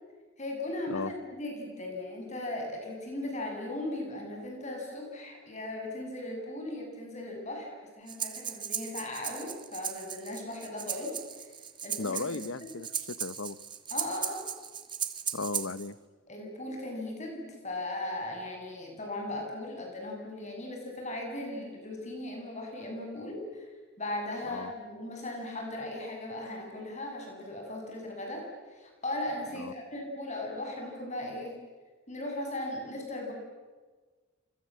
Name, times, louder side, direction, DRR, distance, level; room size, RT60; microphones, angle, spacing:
voice 1, 0.4-7.7 8.0-11.5 11.8-12.7 13.9-14.4 16.3-23.7 24.0-28.4 28.7-31.6 32.1-33.3, left 1 dB, 30° left, 1 dB, 7.3 m, -38 dB
Breathing, 8.1-15.9, right 8 dB, 20° right, 1.4 m, -37 dB
voice 2, 12.0-13.6 15.3-16.0 24.5-24.7 29.5-29.7, left 3 dB, 65° left, 17 dB, 0.9 m, -36 dB
29.5 x 26.5 x 7.6 m, 1.4 s
head